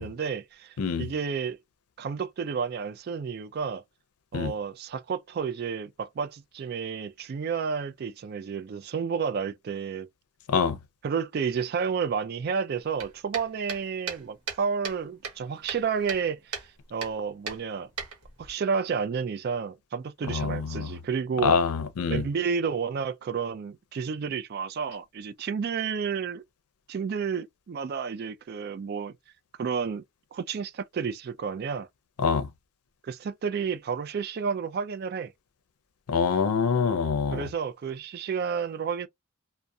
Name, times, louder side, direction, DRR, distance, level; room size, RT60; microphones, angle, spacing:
voice 1, 0.0-1.6 2.0-3.8 4.3-10.1 11.0-16.6 16.9-17.9 18.4-21.6 22.1-26.4 26.9-29.2 29.6-30.0 30.3-31.9 33.0-35.3 37.3-39.1, right 6 dB, 45° right, 0.3 m, -31 dB
voice 2, 0.8-1.1 4.3-4.5 10.5-10.8 20.3-20.9 21.4-22.2 32.2-32.5 36.1-37.4, left 5 dB, 85° left, 0.5 m, -25 dB
sound 1, 13.0-15.0 15.2-16.3 16.5-16.7 17.0-17.2 17.5-18.5, right 5 dB, 85° right, 1.0 m, -36 dB
2.6 x 2.1 x 2.2 m
head